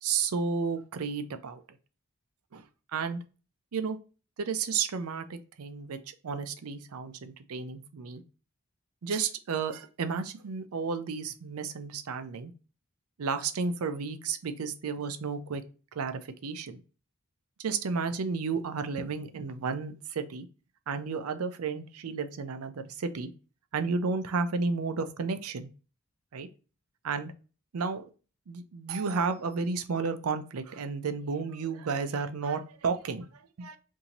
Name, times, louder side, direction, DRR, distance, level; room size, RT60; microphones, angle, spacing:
voice 1, 0.0-1.6 2.5-2.7 2.9-3.2 3.7-4.0 4.4-8.2 9.0-12.5 13.2-15.6 15.9-16.8 17.6-20.5 20.9-23.3 23.7-25.7 26.3-26.5 27.0-27.3 27.7-28.0 28.5-33.8, right 5 dB, 80° right, 10 dB, 0.5 m, -32 dB
2.9 x 2.7 x 3.8 m, 0.35 s
head